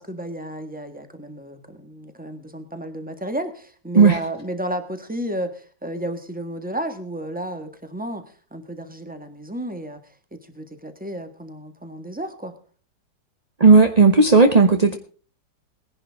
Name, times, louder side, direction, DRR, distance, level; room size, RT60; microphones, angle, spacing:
voice 1, 0.0-8.2 8.5-10.0 10.5-12.5, right 1 dB, 5° right, 7 dB, 1.4 m, -32 dB
voice 2, 13.6-15.0, right 4 dB, 35° right, 5 dB, 0.6 m, -13 dB
19.5 x 11.0 x 3.6 m, 0.41 s
omnidirectional pair, 2.0 m